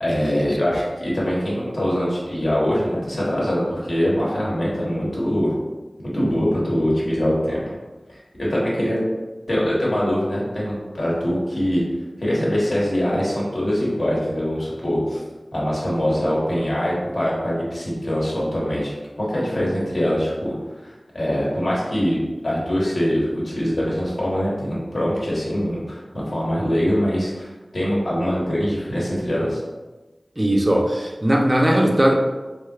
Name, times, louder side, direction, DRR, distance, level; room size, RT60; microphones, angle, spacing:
voice 1, 0.0-5.5 6.1-7.7 8.4-9.0 9.5-11.8 12.2-15.2 15.5-20.5 20.8-22.2 22.4-29.6, equal, 70° left, -6 dB, 1.1 m, -23 dB
voice 2, 30.4-32.1, right 1 dB, 30° right, 1 dB, 0.5 m, -18 dB
3.2 x 2.8 x 2.3 m, 1.2 s
wide cardioid pair, 45°, 0 cm